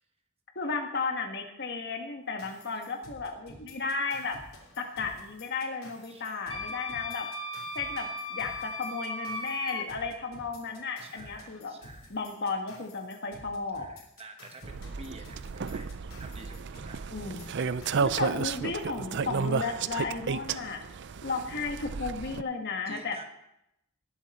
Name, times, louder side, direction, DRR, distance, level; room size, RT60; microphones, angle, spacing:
voice 1, 0.6-4.4 4.8-7.3 7.8-11.7 12.1-13.9 17.1-17.5 18.0-20.8 21.2-23.2, left 4 dB, 55° left, 3 dB, 1.6 m, -34 dB
sound 1, 2.4-19.3, left 1 dB, 85° left, 3.1 m, -52 dB
voice 2, 6.0-6.6 11.0-12.1 13.7-15.9 16.2-17.0 22.9-23.2, right 2 dB, 30° right, 5 dB, 1.1 m, -49 dB
Wind instrument woodwind instrument, 6.5-9.9, left 2 dB, 25° left, 1.4 m, -37 dB
sound 2, 14.6-22.4, right 5 dB, 55° right, 0.5 m, -33 dB
20.0 x 7.7 x 4.3 m, 0.82 s
head